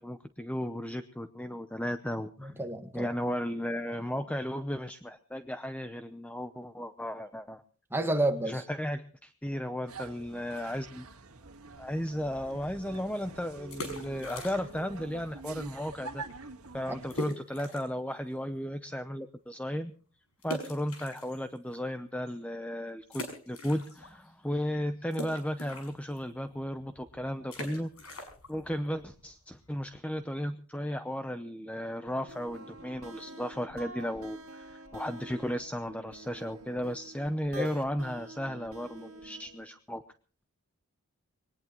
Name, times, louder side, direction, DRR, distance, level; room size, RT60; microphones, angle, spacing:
voice 1, 0.0-2.5 2.9-7.6 8.5-11.1 11.8-16.2 16.7-19.9 20.4-27.9 28.5-40.0, equal, 5° left, 9 dB, 0.6 m, -35 dB
voice 2, 2.4-3.1 7.9-8.6 37.5-37.7, right 1 dB, 10° right, 5 dB, 1.6 m, -30 dB
sound 1, 9.9-17.2, right 4 dB, 85° right, 1.8 m, -46 dB
sound 2, 13.6-14.9 15.2-15.3 15.9-16.0 16.3-16.4 17.1-18.0 18.5-18.6 20.4-21.8 22.3-22.4 23.1-24.3 24.5-30.0, left 1 dB, 80° left, 5.8 m, -42 dB
sound 3, 32.1-39.7, right 2 dB, 65° right, 2.2 m, -48 dB
22.5 x 19.0 x 3.0 m, 0.40 s
head